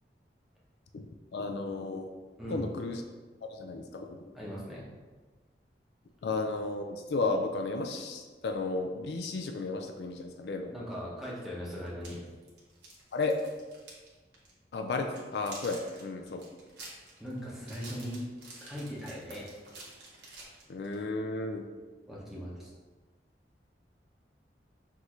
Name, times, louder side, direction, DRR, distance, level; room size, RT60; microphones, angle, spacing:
voice 1, 0.9-2.1 2.5-3.0 3.5-4.2 6.2-10.7 13.1-13.3 14.7-16.4 20.7-21.6, left 3 dB, 70° left, 5 dB, 0.4 m, -33 dB
voice 2, 4.3-4.9 10.7-12.2 17.2-18.2 18.6-19.5 22.1-22.7, equal, ahead, -6 dB, 0.9 m, -39 dB
sound 1, 11.9-14.1 14.3-14.5 14.9-21.0, right 2 dB, 75° right, 1.2 m, -49 dB
6.0 x 2.6 x 3.0 m, 1.3 s
head